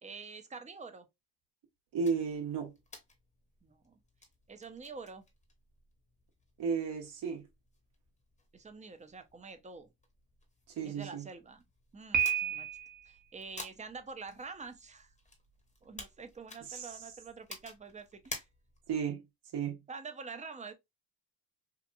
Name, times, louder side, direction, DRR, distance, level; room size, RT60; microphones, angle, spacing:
voice 1, 0.0-1.1 3.6-4.0 4.5-5.2 8.5-9.9 10.8-11.6 11.9-12.7 13.1-15.1 15.8-18.4 19.9-20.7, right 4 dB, 15° right, 0.5 m, -47 dB
voice 2, 1.9-2.7 6.6-7.5 10.8-11.2 16.7-16.9 18.9-19.2 19.5-19.8, right 6 dB, 60° right, 1.0 m, -33 dB
sound 1, 2.0-19.0, left 2 dB, 15° left, 0.9 m, -53 dB
Piano, 12.1-13.1, right 8 dB, 45° right, 0.8 m, -31 dB
2.9 x 2.5 x 2.3 m
supercardioid pair, 80°, 44 cm